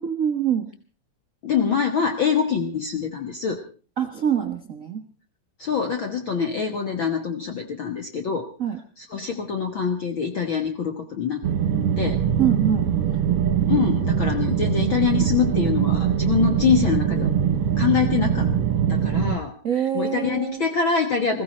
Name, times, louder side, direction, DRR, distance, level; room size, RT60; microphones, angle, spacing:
voice 1, 0.0-0.7 4.0-5.0 8.6-8.8 12.4-12.9 19.6-20.6, right 9 dB, 85° right, 5 dB, 0.7 m, -24 dB
voice 2, 1.4-3.6 5.6-8.5 9.0-11.4 12.0-12.2 13.7-17.3 17.8-18.5 18.9-19.5 19.9-21.4, left 6 dB, 50° left, 4 dB, 1.7 m, -24 dB
sound 1, 11.4-19.4, right 8 dB, 60° right, 1.9 m, -22 dB
21.5 x 15.5 x 4.2 m, 0.37 s
omnidirectional pair, 3.3 m